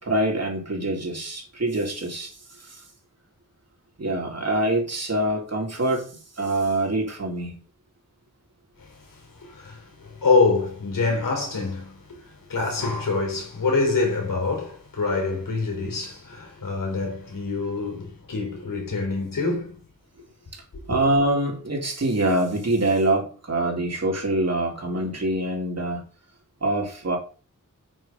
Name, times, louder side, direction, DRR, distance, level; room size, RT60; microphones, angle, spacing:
voice 1, 0.0-2.8 4.0-6.1 6.4-7.6 20.5-20.6 20.9-26.0 26.6-27.2, right 1 dB, 50° right, 3.8 m, -25 dB
voice 2, 8.8-19.8, left 4 dB, 90° left, 4.3 m, -26 dB
9.0 x 6.6 x 5.4 m
wide cardioid pair, 90°, 32 cm